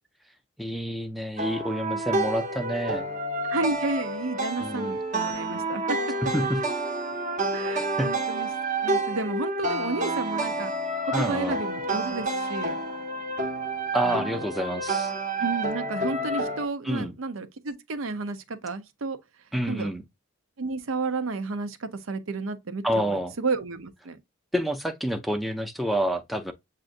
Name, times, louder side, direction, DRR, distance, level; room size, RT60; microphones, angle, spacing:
voice 1, 0.6-3.1 4.6-5.0 6.3-6.6 8.0-8.1 11.1-11.6 13.9-15.1 16.8-17.2 19.5-20.0 22.8-23.4 24.5-26.5, equal, ahead, 0.5 m, -28 dB
sound 1, 1.4-16.7, right 2 dB, 35° right, 0.9 m, -29 dB
voice 2, 3.5-5.8 7.5-8.5 8.8-10.7 11.0-12.8 14.0-14.5 15.4-19.2 19.7-19.9 20.6-24.2, right 3 dB, 80° right, 0.7 m, -32 dB
7.5 x 2.5 x 2.5 m
head